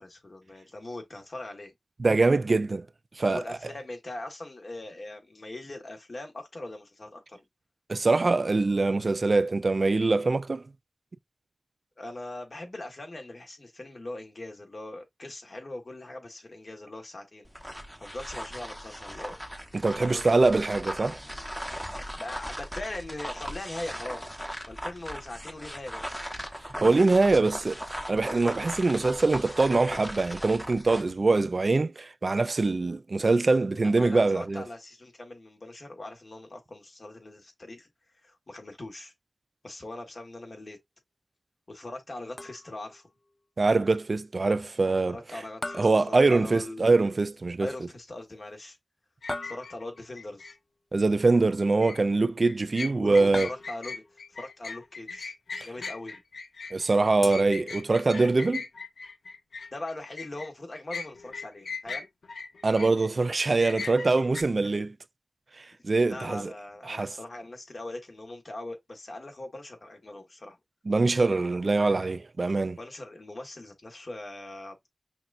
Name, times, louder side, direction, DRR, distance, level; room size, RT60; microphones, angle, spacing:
voice 1, 0.0-1.7 3.3-7.4 12.0-17.4 18.0-19.4 20.0-20.4 22.1-24.4 24.7-26.0 33.8-37.9 38.2-39.1 39.6-40.8 41.7-43.0 45.1-47.0 47.6-48.8 49.4-50.5 53.0-55.3 55.6-56.2 59.7-62.1 64.6-64.8 66.1-70.6 72.8-74.9, left 2 dB, 50° left, 1.4 m, -41 dB
voice 2, 2.0-2.9 3.2-3.4 7.9-10.6 19.7-21.2 26.8-34.6 43.6-45.2 45.8-47.7 50.9-53.5 56.7-58.6 62.6-64.9 65.6-66.5 66.9-67.1 70.9-72.8, right 3 dB, 55° right, 0.3 m, -23 dB
sound 1, 17.4-31.1, equal, 5° left, 1.0 m, -38 dB
sound 2, 42.4-43.0 45.6-46.9 49.3-50.2 53.3-54.2 57.2-58.2, left 2 dB, 30° left, 0.4 m, -39 dB
sound 3, 49.2-50.5 51.6-52.0 52.4-60.5 60.9-63.1 63.5-64.4, left 4 dB, 85° left, 0.5 m, -39 dB
5.8 x 2.4 x 2.5 m
wide cardioid pair, 60°, 0 cm